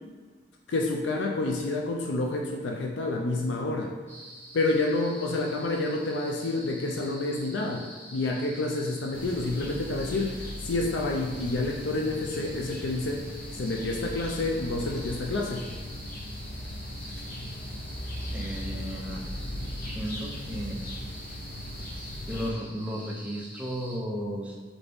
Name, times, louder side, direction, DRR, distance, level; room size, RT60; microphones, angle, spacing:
voice 1, 0.7-3.9 4.5-15.7, left 2 dB, 85° left, 1 dB, 0.4 m, -29 dB
sound 1, 4.1-24.0, equal, 10° left, 0.9 m, -46 dB
sound 2, 9.1-22.5, left 1 dB, 50° left, 0.7 m, -38 dB
voice 2, 18.3-19.2 19.9-20.8 22.3-24.6, equal, 5° right, -3 dB, 0.6 m, -34 dB
4.0 x 3.4 x 3.4 m, 1.5 s
head